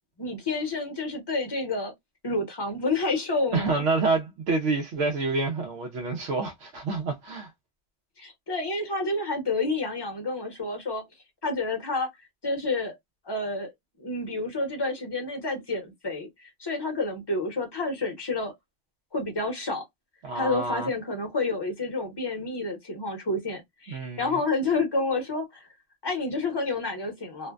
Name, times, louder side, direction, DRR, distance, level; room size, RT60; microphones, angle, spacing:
voice 1, 0.2-1.9 2.2-3.8 8.2-11.0 11.4-12.1 12.4-12.9 13.2-13.7 14.0-18.5 19.1-19.8 20.3-25.7 26.0-27.5, left 3 dB, 25° left, 0.7 m, -29 dB
voice 2, 3.5-7.5 20.2-20.9 23.9-24.4, right 3 dB, 85° right, 0.9 m, -28 dB
2.5 x 2.1 x 2.3 m
omnidirectional pair, 1.2 m